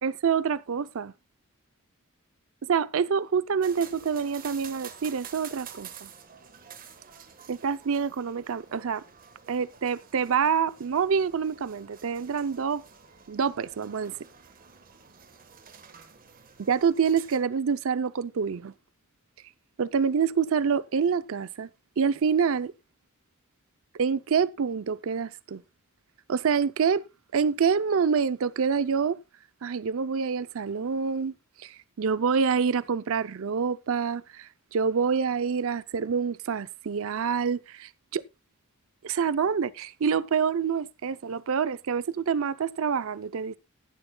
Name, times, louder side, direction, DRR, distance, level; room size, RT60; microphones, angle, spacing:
voice 1, 0.0-1.1 2.7-6.1 7.5-9.0 9.5-12.8 13.3-14.2 16.6-18.7 19.8-21.7 22.0-22.7 23.9-25.6 26.3-27.0 27.3-29.2 29.6-31.3 31.6-38.2 39.0-43.6, right 6 dB, 65° right, 0.5 m, -27 dB
sound 1, 3.6-17.4, right 7 dB, 40° right, 1.3 m, -49 dB
16.0 x 11.0 x 2.2 m
head